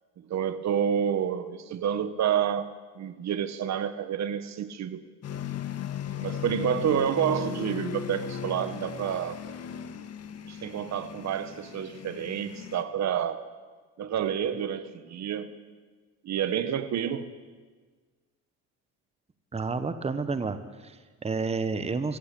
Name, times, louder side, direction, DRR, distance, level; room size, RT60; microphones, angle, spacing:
voice 1, 0.3-5.0 6.2-9.4 10.5-13.5 14.0-15.5 16.2-17.3, right 9 dB, 55° right, 12 dB, 1.5 m, -29 dB
sound 1, 5.2-12.8, left 8 dB, 50° left, 1.7 m, -37 dB
voice 2, 19.5-22.2, right 4 dB, 20° right, 11 dB, 1.2 m, -30 dB
23.5 x 15.0 x 8.5 m, 1.4 s
cardioid pair, 105°, 32 cm